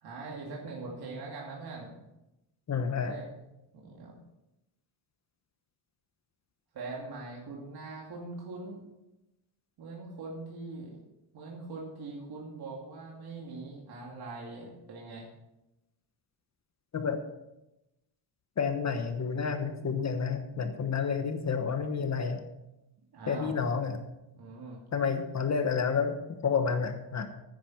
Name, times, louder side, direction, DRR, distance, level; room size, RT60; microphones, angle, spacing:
voice 1, 0.0-1.9 3.0-3.3 3.7-4.1 6.7-8.8 9.8-11.0 11.3-15.2 23.1-23.6 24.3-24.8, right 3 dB, 50° right, -3 dB, 2.6 m, -42 dB
voice 2, 2.7-3.2 16.9-17.2 18.6-22.5 23.3-24.0 24.9-27.3, left 6 dB, 35° left, 7 dB, 1.1 m, -30 dB
10.5 x 9.2 x 5.8 m, 0.91 s
cardioid pair, 155°, 49 cm